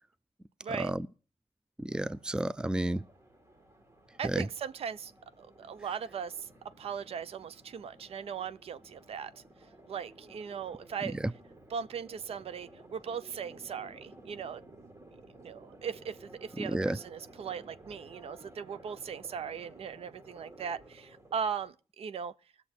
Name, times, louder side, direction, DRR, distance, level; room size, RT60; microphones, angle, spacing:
voice 1, 0.6-0.9 4.2-5.1 5.4-6.5 6.8-9.4 9.9-11.2 11.7-14.9 15.3-22.4, right 7 dB, 70° right, 0.6 m, -39 dB
voice 2, 1.8-3.0 4.2-4.5 11.1-11.2 16.6-17.0, right 1 dB, 10° right, 0.5 m, -31 dB
sound 1, 1.9-21.7, right 2 dB, 30° right, 2.1 m, -55 dB
20.0 x 6.9 x 4.3 m
cardioid pair, 65°, 11 cm